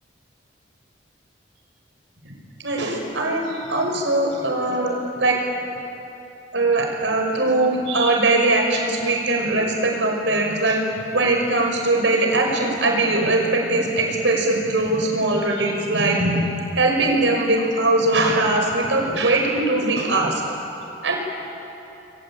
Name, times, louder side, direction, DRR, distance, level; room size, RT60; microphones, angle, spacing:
voice 1, 2.6-5.4 6.5-10.8 11.1-20.4 21.0-21.2, right 2 dB, 85° right, 1 dB, 5.8 m, -21 dB
28.5 x 23.0 x 9.1 m, 3.0 s
head